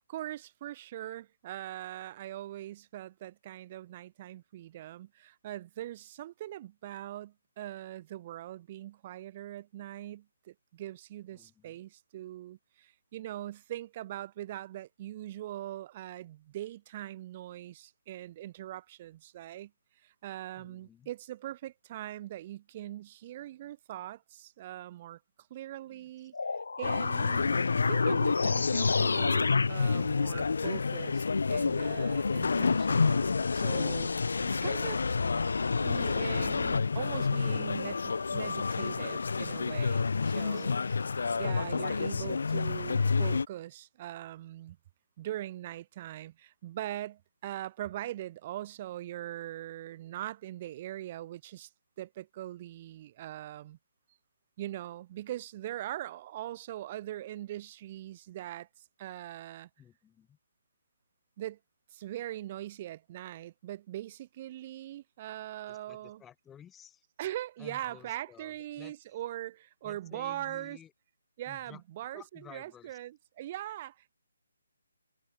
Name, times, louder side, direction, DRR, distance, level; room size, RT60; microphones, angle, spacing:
voice 1, 0.1-19.7 20.0-25.2 25.5-26.3 26.8-35.0 35.8-41.0 41.4-44.8 45.2-51.7 52.0-53.8 54.6-58.7 59.0-59.7 61.4-61.6 61.9-66.2 67.2-70.8 71.4-74.1, right 13 dB, 20° right, 0.9 m, -41 dB
voice 2, 11.3-11.8 20.6-21.1 25.9-26.1 59.8-60.4 65.7-67.0 67.6-68.9 69.8-70.9 71.5-71.8 72.1-73.0, left 9 dB, 5° left, 1.8 m, -54 dB
sound 1, 26.3-36.8, left 4 dB, 70° left, 1.8 m, -32 dB
sound 2, 26.8-43.4, left 4 dB, 55° left, 1.2 m, -30 dB
hypercardioid pair, 180°, 0 cm